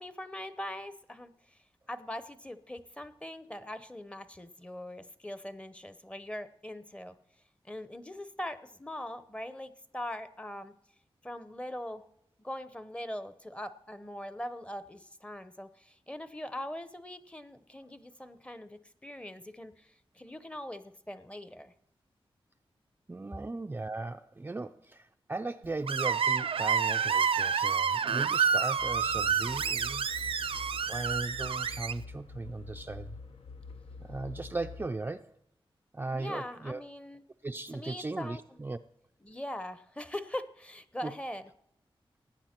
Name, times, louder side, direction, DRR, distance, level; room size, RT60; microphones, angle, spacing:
voice 1, 0.0-1.6 1.9-7.2 7.6-10.7 11.2-12.0 12.4-21.7 36.1-37.2 37.7-38.4 39.2-41.5, left 1 dB, 10° left, 0.7 m, -41 dB
voice 2, 23.1-30.1 30.9-33.2 34.0-35.3 35.9-36.8 37.4-38.8 41.0-41.1, right 3 dB, 20° right, 0.4 m, -37 dB
Screech, 25.9-31.9, right 7 dB, 80° right, 0.5 m, -29 dB
sound 1, 28.8-35.0, left 4 dB, 80° left, 0.9 m, -46 dB
16.5 x 9.9 x 4.4 m
wide cardioid pair, 120°, 9 cm